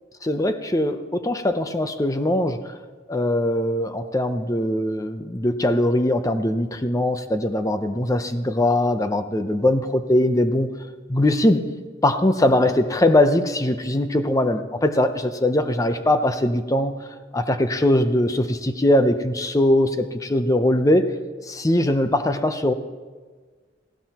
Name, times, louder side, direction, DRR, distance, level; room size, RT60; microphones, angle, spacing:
voice 1, 0.2-2.7 3.1-10.7 11.1-11.6 12.0-17.0 17.3-21.1 21.4-22.7, left 1 dB, 20° left, 9 dB, 0.6 m, -21 dB
18.5 x 15.5 x 3.0 m, 1.5 s
head